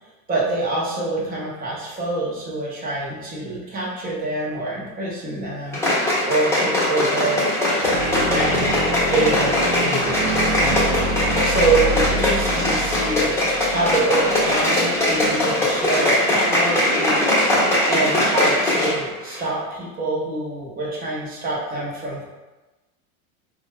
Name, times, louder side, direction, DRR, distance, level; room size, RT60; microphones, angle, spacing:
voice 1, 0.3-5.8 6.2-7.5 8.0-8.8 9.1-13.3 13.7-17.6 17.9-22.2, right 2 dB, 20° right, -5 dB, 1.0 m, -26 dB
sound 1, 5.7-19.0 19.3-19.4, left 1 dB, 5° left, 1.1 m, -20 dB
sound 2, 7.8-14.5, equal, 70° right, 0.7 m, -27 dB
3.7 x 2.4 x 3.1 m, 1.1 s
supercardioid pair, 135°, 42 cm